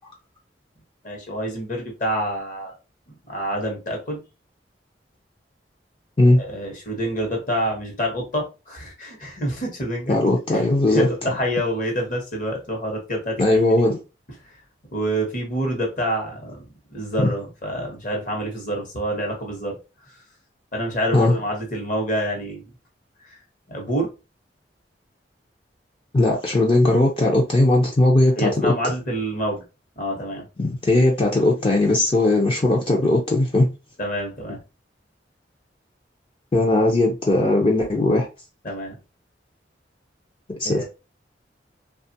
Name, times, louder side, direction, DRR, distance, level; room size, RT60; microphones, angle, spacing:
voice 1, 1.0-2.7 3.2-4.2 6.4-10.2 10.5-10.7 10.9-13.6 14.9-19.8 20.7-22.6 23.3-23.4 23.7-24.1 28.4-29.6 30.0-30.4 34.0-34.6 38.6-39.0 40.6-40.9, equal, 45° left, 1.0 m, -27 dB
voice 2, 10.1-11.1 13.4-14.0 17.2-17.3 21.1-21.4 26.1-28.7 30.6-33.7 36.5-38.3 40.5-40.9, left 2 dB, 30° left, 0.4 m, -18 dB
2.9 x 2.3 x 2.6 m
head